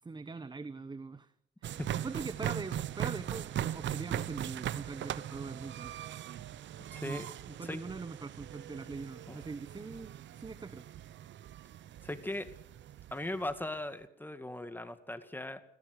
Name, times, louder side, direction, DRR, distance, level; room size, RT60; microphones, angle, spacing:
voice 1, 0.0-1.3 1.6-5.9 7.0-10.8, right 4 dB, 20° right, 14 dB, 1.0 m, -43 dB
sound 1, 1.6-13.6, right 11 dB, 65° right, 0.9 m, -40 dB
voice 2, 6.9-7.3 7.6-7.8 9.3-9.4 12.0-12.5 13.1-15.6, left 1 dB, 10° left, 9 dB, 2.2 m, -38 dB
20.0 x 17.5 x 8.1 m, 0.72 s
cardioid pair, 90°, 20 cm